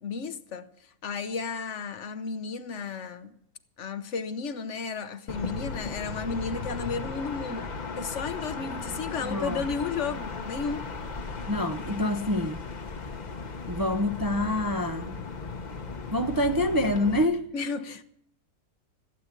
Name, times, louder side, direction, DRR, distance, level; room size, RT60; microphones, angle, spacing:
voice 1, 0.0-3.3 3.8-7.7 8.0-10.8 17.5-18.0, left 5 dB, 60° left, 1.1 m, -33 dB
sound 1, 5.3-17.2, left 4 dB, 35° left, 1.0 m, -36 dB
voice 2, 9.2-9.6 11.5-12.6 13.7-15.2 16.1-17.5, left 1 dB, 25° right, 0.5 m, -26 dB
15.5 x 8.6 x 8.4 m
omnidirectional pair, 1.5 m